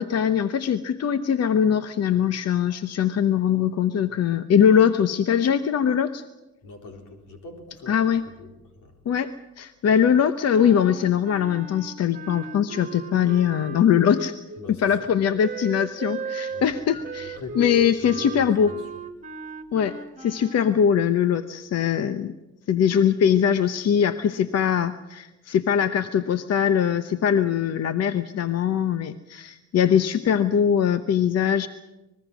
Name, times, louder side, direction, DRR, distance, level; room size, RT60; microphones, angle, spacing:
voice 1, 0.0-6.2 7.9-8.2 9.1-14.4 14.8-18.7 19.7-22.3 22.7-31.7, left 8 dB, 55° left, 11 dB, 0.9 m, -22 dB
voice 2, 6.6-9.0 14.6-15.1 16.5-18.9, left 3 dB, 90° left, 3 dB, 4.3 m, -42 dB
Wind instrument woodwind instrument, 10.5-14.7 15.4-20.8, right 3 dB, 25° right, 1.7 m, -37 dB
25.0 x 20.5 x 6.2 m, 1.0 s
cardioid pair, 90°, 30 cm